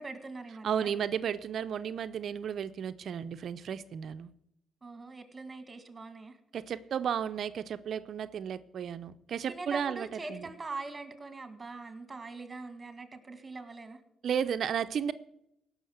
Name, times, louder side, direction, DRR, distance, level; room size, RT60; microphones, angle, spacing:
voice 1, 0.0-0.9 4.8-6.4 9.5-14.0, right 3 dB, 25° right, 10 dB, 2.0 m, -42 dB
voice 2, 0.6-4.3 6.5-10.5 14.2-15.1, right 8 dB, 60° right, 12 dB, 0.6 m, -33 dB
17.0 x 6.4 x 7.9 m, 0.79 s
cardioid pair, 90°, 0 cm